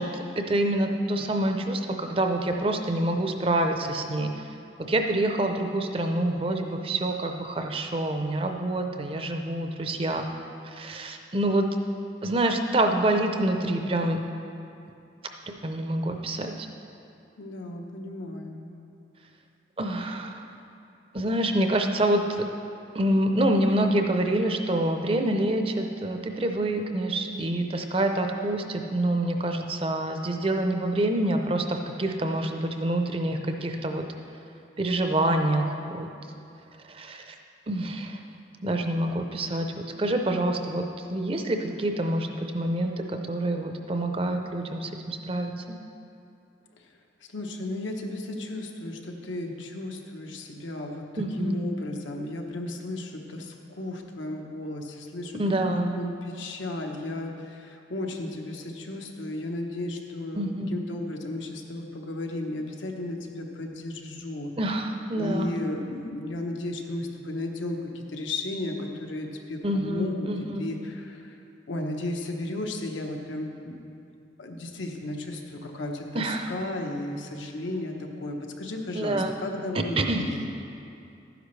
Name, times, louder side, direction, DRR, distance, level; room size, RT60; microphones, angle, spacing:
voice 1, 0.0-4.3 4.9-10.3 10.7-11.7 12.2-14.2 15.5-16.7 19.8-20.3 21.1-22.4 22.9-34.1 34.8-36.1 36.9-37.3 37.7-38.2 38.6-39.7 40.0-40.8 41.1-45.8 51.2-51.7 55.4-56.0 60.4-60.8 64.6-65.5 69.6-70.7 76.1-76.5 79.0-79.3 80.0-80.2, right 1 dB, 30° right, 4 dB, 0.5 m, -26 dB
voice 2, 17.4-18.8 47.3-55.4 55.7-64.5 65.1-70.3 70.6-71.4 71.7-73.8 74.4-80.5, left 2 dB, 85° left, 2 dB, 1.0 m, -34 dB
12.0 x 10.0 x 3.2 m, 2.6 s
head